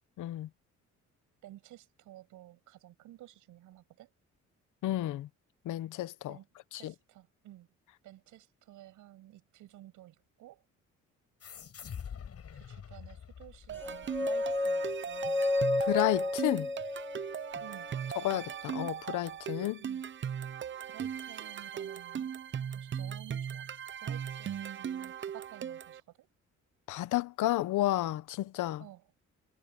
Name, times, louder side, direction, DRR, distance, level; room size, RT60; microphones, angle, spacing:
voice 1, 0.2-0.5 4.8-5.3 5.6-6.4 6.7-6.9 15.8-16.7 18.2-19.8 26.9-28.8, left 15 dB, 85° left, 1.2 m, -31 dB
voice 2, 1.4-4.1 6.3-6.5 6.7-7.7 8.0-10.6 12.5-15.5 17.6-17.9 19.8-20.0 20.9-22.3 22.7-23.7 24.0-26.3 28.8-29.0, right 14 dB, 90° right, 6.6 m, -53 dB
sound 1, 11.4-14.4, left 7 dB, 55° left, 7.4 m, -46 dB
sound 2, 13.7-26.0, right 8 dB, 40° right, 0.7 m, -38 dB
Corto Bibrante, 13.8-17.9, left 2 dB, 5° left, 0.9 m, -32 dB
cardioid pair, 90°, 30 cm